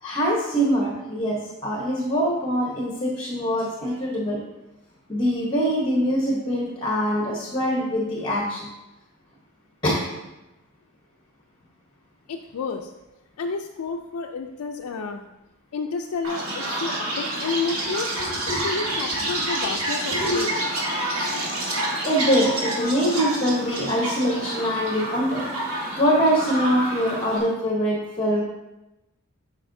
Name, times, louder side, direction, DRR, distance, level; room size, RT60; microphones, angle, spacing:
voice 1, 0.0-4.4 5.1-8.7 9.8-10.1 18.5-19.0 20.2-20.4 22.0-25.5 26.0-28.4, equal, 20° left, -2 dB, 1.0 m, -23 dB
voice 2, 12.3-12.9 13.4-15.2 15.7-18.4 18.6-20.5, left 4 dB, 85° left, 3 dB, 0.4 m, -30 dB
Chirp tweet, 16.2-27.4, right 1 dB, 75° right, 1.7 m, -28 dB
8.2 x 5.4 x 2.7 m, 0.99 s
head